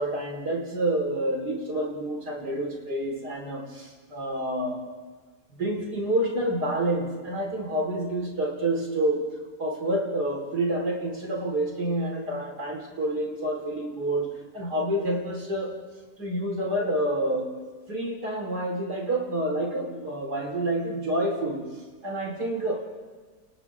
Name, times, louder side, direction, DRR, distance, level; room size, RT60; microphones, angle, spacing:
voice 1, 0.0-4.9 5.5-9.2 9.6-14.3 14.5-15.7 16.2-17.5 17.9-21.6 22.0-22.8, right 1 dB, 85° right, 0 dB, 4.9 m, -28 dB
29.5 x 28.5 x 3.7 m, 1.4 s
omnidirectional pair, 1.7 m